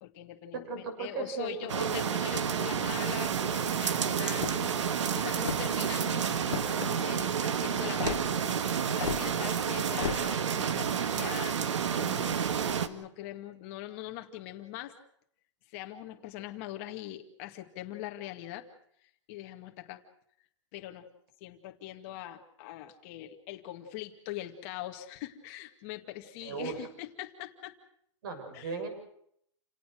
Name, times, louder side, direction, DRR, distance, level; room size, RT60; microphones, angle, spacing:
voice 1, 0.0-4.8 5.1-12.5 12.8-15.0 15.7-18.7 19.0-20.0 20.7-21.1 21.4-27.8 28.5-28.8, left 14 dB, 30° left, 5 dB, 2.1 m, -42 dB
voice 2, 0.5-2.1 26.4-26.7 28.2-28.9, right 5 dB, 45° right, 6 dB, 7.1 m, -36 dB
sound 1, 1.7-12.9, right 7 dB, 75° right, 2.0 m, -30 dB
sound 2, 4.3-4.8 5.4-5.8 6.5-6.9 8.0-8.2 9.0-9.2 10.0-10.2, left 9 dB, 85° left, 1.7 m, -34 dB
29.5 x 18.0 x 6.5 m, 0.70 s
hypercardioid pair, 175°, 16 cm